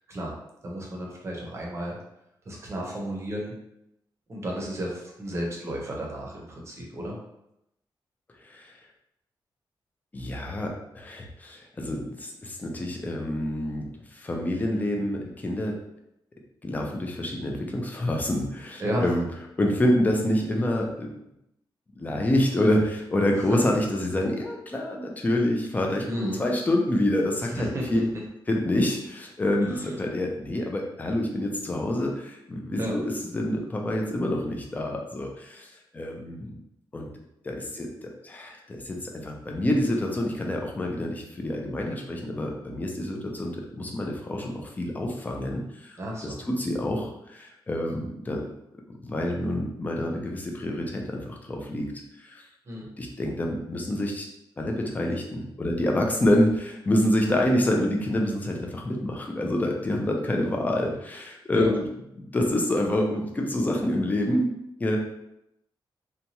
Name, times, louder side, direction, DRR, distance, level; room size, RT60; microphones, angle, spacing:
voice 1, 0.6-2.0 2.4-3.5 4.3-7.2 18.8-19.1 23.5-23.6 26.1-26.4 27.5-27.9 29.7-29.9 32.8-33.0 46.0-46.4 52.7-52.9 61.5-61.7, equal, 35° right, -2 dB, 0.7 m, -32 dB
voice 2, 10.1-15.8 16.6-19.3 19.6-21.1 22.0-28.0 28.5-36.5 36.9-37.1 37.4-37.9 38.2-46.0 46.5-48.4 49.0-51.9 52.2-52.5 53.0-54.3 54.6-61.8 62.3-64.5 64.8-65.0, left 1 dB, 20° left, 1 dB, 0.4 m, -27 dB
2.8 x 2.2 x 2.8 m, 0.83 s
wide cardioid pair, 150°, 9 cm